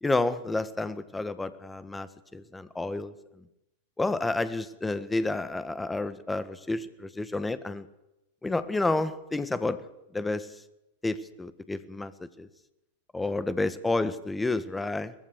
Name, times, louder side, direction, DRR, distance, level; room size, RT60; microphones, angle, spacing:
voice 1, 0.0-3.1 4.0-7.9 8.4-9.8 10.1-10.5 11.0-12.5 13.1-15.1, left 2 dB, 10° left, 13 dB, 1.6 m, -30 dB
23.0 x 20.5 x 6.6 m, 0.88 s
figure-of-eight pair, 90°, 0 cm